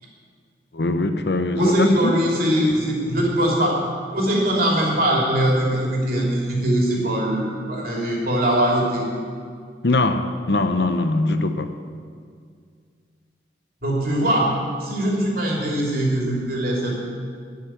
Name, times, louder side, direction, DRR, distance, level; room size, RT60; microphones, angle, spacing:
voice 1, 0.7-2.2 9.8-11.8, left 2 dB, 65° left, 8 dB, 0.8 m, -22 dB
voice 2, 1.6-3.8 4.1-9.0 13.8-14.5 14.8-17.0, right 1 dB, 55° right, -2 dB, 3.1 m, -21 dB
12.0 x 6.7 x 9.2 m, 2.1 s
head